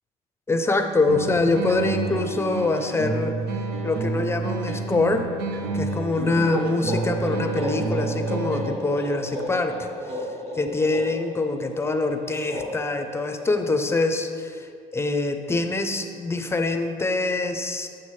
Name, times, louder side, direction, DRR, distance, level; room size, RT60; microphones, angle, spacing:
voice 1, 0.5-3.3 3.8-5.3 5.7-9.9 10.5-17.9, left 3 dB, 15° left, 6 dB, 0.5 m, -24 dB
sound 1, 1.1-9.0, right 4 dB, 75° right, 0.7 m, -30 dB
sound 2, 6.1-13.9, equal, 60° right, 1.6 m, -33 dB
7.2 x 6.1 x 3.1 m, 2.3 s
cardioid pair, 110°, 17 cm